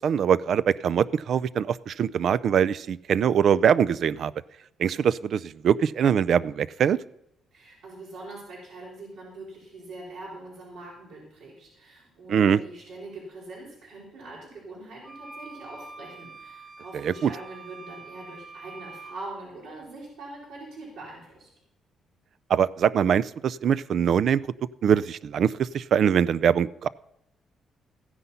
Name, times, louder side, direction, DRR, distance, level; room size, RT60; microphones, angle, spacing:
voice 1, 0.0-4.3 4.8-7.0 12.3-12.6 16.9-17.3 22.5-24.5 24.8-26.9, right 8 dB, 60° right, 19 dB, 0.4 m, -23 dB
voice 2, 7.5-21.5, right 2 dB, 75° right, -6 dB, 4.7 m, -43 dB
sound 1, 15.0-19.2, right 3 dB, 10° right, 1.2 m, -45 dB
15.0 x 9.8 x 5.6 m, 0.77 s
cardioid pair, 135°, 0 cm